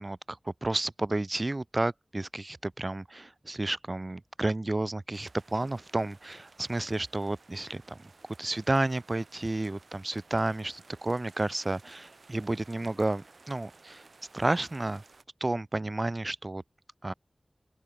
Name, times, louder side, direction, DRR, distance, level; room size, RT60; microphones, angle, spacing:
voice 1, 0.0-8.0 8.4-14.0 14.3-15.0 15.4-16.6 17.0-17.1, right 2 dB, 45° right, 0.3 m, -31 dB
sound 1, 5.1-15.2, right 3 dB, 80° right, 6.9 m, -57 dB
open air
wide cardioid pair, 45°, 0 cm